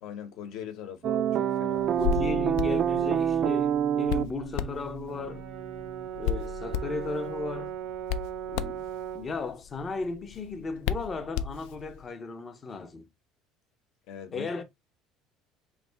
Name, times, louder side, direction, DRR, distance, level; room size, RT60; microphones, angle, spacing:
voice 1, 0.0-1.9 14.1-14.5, left 9 dB, 55° left, 0.9 m, -41 dB
sound 1, 1.0-6.1, right 9 dB, 35° right, 0.3 m, -28 dB
Hands, 1.8-12.0, left 8 dB, 75° left, 0.3 m, -35 dB
voice 2, 2.0-5.4 6.2-7.8 8.5-8.8 9.1-13.0 14.3-14.6, left 3 dB, 20° left, 0.5 m, -35 dB
Brass instrument, 5.1-9.4, right 11 dB, 90° right, 0.6 m, -38 dB
3.2 x 2.8 x 4.4 m
cardioid pair, 175°, 0 cm